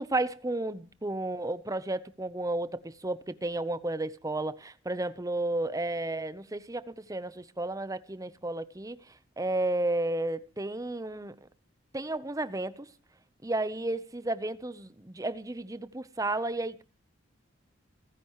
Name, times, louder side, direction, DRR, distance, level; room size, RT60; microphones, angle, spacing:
voice 1, 0.0-9.0 9.4-11.4 11.9-12.9 13.4-16.8, right 2 dB, 15° right, 0.9 m, -32 dB
28.5 x 10.5 x 3.1 m
head